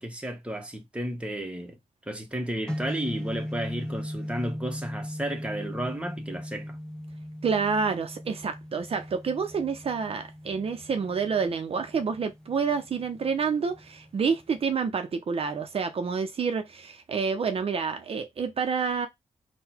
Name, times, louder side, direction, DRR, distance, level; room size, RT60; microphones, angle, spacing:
voice 1, 0.0-1.8 2.1-6.8, right 1 dB, 10° right, 1.1 m, -33 dB
sound 1, 2.7-14.7, equal, 5° left, 0.9 m, -39 dB
voice 2, 7.4-19.1, right 5 dB, 55° right, 0.6 m, -28 dB
3.8 x 2.2 x 4.4 m
cardioid pair, 65°, 12 cm